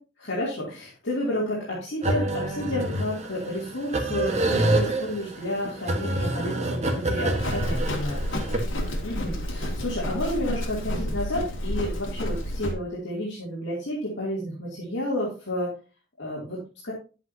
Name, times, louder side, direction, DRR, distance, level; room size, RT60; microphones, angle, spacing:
voice 1, 0.2-8.2 8.5-8.6 9.0-15.7 16.2-16.9, left 1 dB, 65° left, -6 dB, 2.8 m, -31 dB
sound 1, 2.0-8.6, right 1 dB, 35° right, 1.4 m, -27 dB
Livestock farm animals working animals, 7.4-12.7, equal, 85° left, 2.2 m, -30 dB
10.5 x 8.1 x 2.8 m, 0.33 s
head